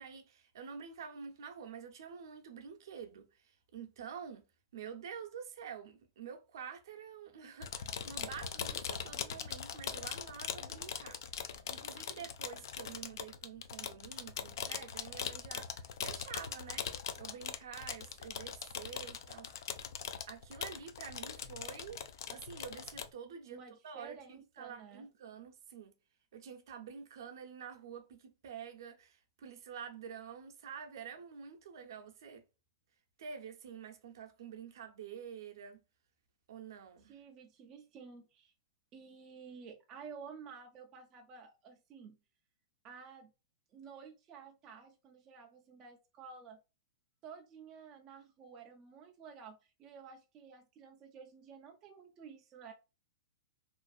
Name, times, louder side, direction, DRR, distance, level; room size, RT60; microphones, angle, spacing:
voice 1, 0.0-4.4 4.7-16.9 17.2-19.5 20.3-22.0 22.3-25.9 26.3-32.4 33.2-35.8 36.5-37.1, right 7 dB, 65° right, 0.6 m, -48 dB
sound 1, 7.6-23.1, left 8 dB, 65° left, 0.3 m, -41 dB
voice 2, 23.5-25.1 37.0-38.5 38.9-42.2 42.8-43.3 43.7-46.6 47.2-52.7, right 6 dB, 20° right, 0.3 m, -52 dB
2.5 x 2.3 x 2.3 m
supercardioid pair, 165°, 2 cm